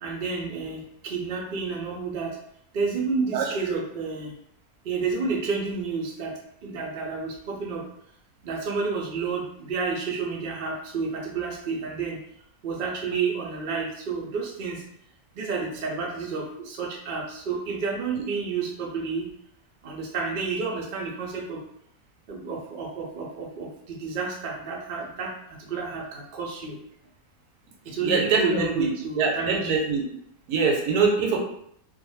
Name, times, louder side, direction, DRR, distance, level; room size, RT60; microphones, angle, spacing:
voice 1, 0.0-2.4 2.7-4.3 4.8-6.3 6.6-7.8 8.4-12.2 12.6-14.8 15.4-19.3 19.8-21.6 22.3-25.3 25.7-26.8 27.9-29.8, right 4 dB, 60° right, -2 dB, 0.5 m, -30 dB
voice 2, 3.3-3.8 18.1-18.2 28.0-28.9 29.1-30.0 30.5-31.4, right 5 dB, 85° right, 0 dB, 1.2 m, -24 dB
2.5 x 2.2 x 3.0 m, 0.71 s
omnidirectional pair, 1.6 m